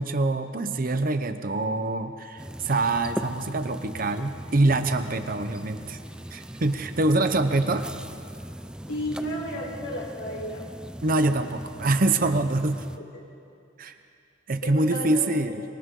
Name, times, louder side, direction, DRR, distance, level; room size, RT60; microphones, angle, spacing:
voice 1, 0.0-6.0 6.3-7.9 11.0-12.8 13.8-13.9 14.5-15.6, right 2 dB, 45° right, 8 dB, 0.9 m, -25 dB
sound 1, 2.4-13.0, equal, 5° right, 0.4 m, -40 dB
voice 2, 8.9-10.7 13.0-13.1 14.6-15.4, equal, 65° left, -1 dB, 4.3 m, -33 dB
27.5 x 24.5 x 3.8 m, 2.5 s
head